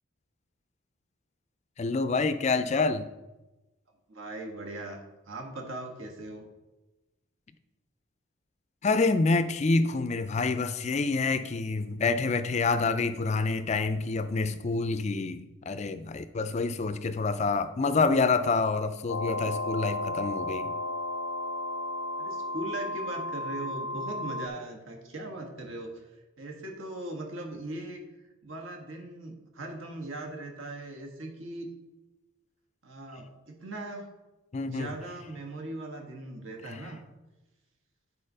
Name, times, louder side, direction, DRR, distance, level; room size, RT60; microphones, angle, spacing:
voice 1, 1.8-3.1 8.8-20.7 34.5-34.9, left 3 dB, 35° left, 11 dB, 0.4 m, -27 dB
voice 2, 4.1-5.0 5.2-6.4 22.2-26.1 26.4-28.0 28.4-31.7 32.8-34.1 34.6-37.0, right 1 dB, 70° right, 2 dB, 1.4 m, -39 dB
sound 1, 19.1-24.5, left 1 dB, 80° left, 0.6 m, -33 dB
8.8 x 4.1 x 5.4 m, 1.1 s
head